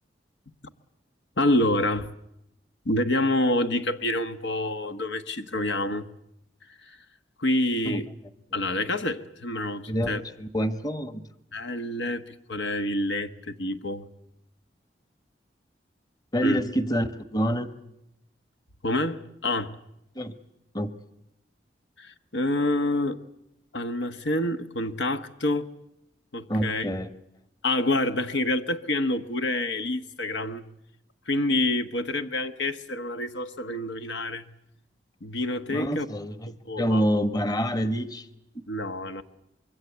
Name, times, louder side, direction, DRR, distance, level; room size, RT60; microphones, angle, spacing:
voice 1, 1.4-2.1 2.8-6.1 6.8-7.0 7.4-8.1 8.5-10.2 11.5-14.1 16.4-16.6 18.8-19.7 22.0-23.2 23.7-25.7 26.3-26.9 27.6-30.6 31.3-34.5 35.2-36.1 36.6-37.0 38.7-39.2, left 1 dB, 85° left, 9 dB, 1.3 m, -27 dB
voice 2, 9.9-11.2 16.3-17.7 20.1-20.4 20.7-20.9 26.5-27.1 35.7-38.3 38.5-38.6, equal, 20° left, 11 dB, 1.1 m, -27 dB
25.5 x 22.5 x 8.1 m, 0.83 s
head